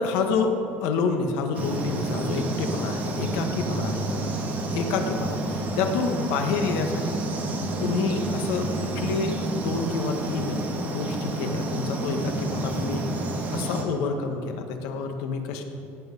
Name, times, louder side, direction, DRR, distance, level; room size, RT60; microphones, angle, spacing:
voice 1, 0.0-4.3 4.7-7.2 7.8-13.1 13.5-15.6, left 4 dB, 80° left, 5 dB, 1.5 m, -28 dB
sound 1, 1.5-13.8, right 2 dB, 30° right, 1.7 m, -29 dB
17.0 x 8.1 x 5.4 m, 2.6 s
cardioid pair, 170°, 6 cm